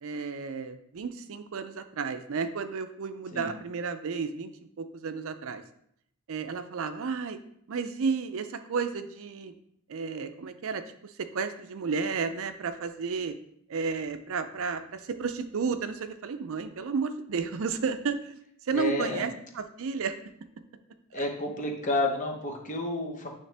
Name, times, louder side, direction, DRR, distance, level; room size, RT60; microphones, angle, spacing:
voice 1, 0.0-5.6 6.3-7.4 7.7-9.5 9.9-13.4 13.7-18.4 18.6-20.2 21.1-21.3, right 5 dB, 65° right, 10 dB, 0.5 m, -32 dB
voice 2, 18.7-19.2 21.1-23.3, left 2 dB, 35° left, 1 dB, 1.0 m, -30 dB
9.1 x 3.2 x 3.4 m, 0.71 s
head